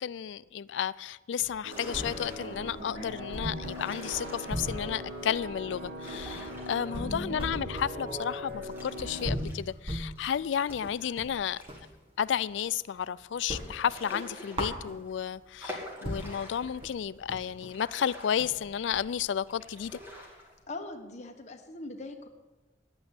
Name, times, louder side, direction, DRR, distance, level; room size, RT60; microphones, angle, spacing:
voice 1, 0.0-11.6 12.2-20.0, left 8 dB, 80° left, 0.3 m, -32 dB
sound 1, 1.4-2.6 2.9-3.0 3.3-11.9 12.3-13.1 13.3-15.3 15.8-15.9 16.0-20.2, equal, 30° right, 1.5 m, -39 dB
sound 2, 1.6-9.3, equal, 60° right, 3.0 m, -40 dB
sound 3, 1.7-2.7 3.4-4.9 5.8-7.4 7.7-7.8 8.6-11.9 12.3-12.4 12.7-12.8 13.6-15.1 15.6-16.9 17.4-19.0 19.5-20.6, left 1 dB, 10° right, 2.4 m, -46 dB
voice 2, 6.9-7.3 20.7-22.3, left 1 dB, 40° left, 1.3 m, -41 dB
10.5 x 8.8 x 8.2 m
head